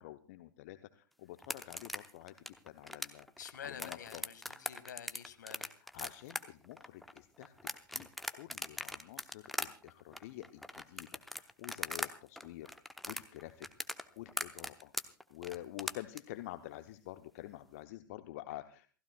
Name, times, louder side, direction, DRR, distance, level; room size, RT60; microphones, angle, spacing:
voice 1, 0.0-3.3 3.6-4.2 5.6-8.1 8.3-12.7 13.1-13.7 14.2-14.9 15.3-18.9, left 15 dB, 45° left, 10 dB, 0.8 m, -48 dB
sound 1, 1.4-12.1 12.4-16.2, left 1 dB, ahead, 0.9 m, -40 dB
voice 2, 3.4-5.7, left 8 dB, 60° left, 10 dB, 1.7 m, -48 dB
28.0 x 15.5 x 2.3 m, 0.38 s
figure-of-eight pair, 100°, 11 cm